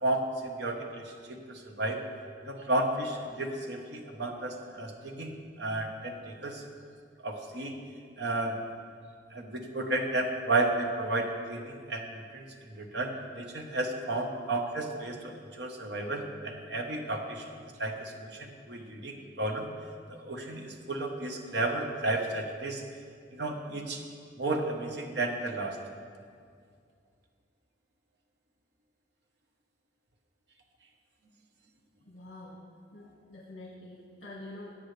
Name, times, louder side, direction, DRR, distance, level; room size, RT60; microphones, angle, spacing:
voice 1, 0.0-2.0 2.4-6.6 7.2-7.8 8.2-8.6 9.3-17.5 17.8-19.7 20.1-22.8 23.3-24.0 24.4-25.8, right 2 dB, 60° right, 3 dB, 1.1 m, -33 dB
voice 2, 32.0-32.6 32.9-34.9, left 1 dB, 70° left, -4 dB, 1.6 m, -46 dB
17.0 x 7.3 x 3.3 m, 2.2 s
head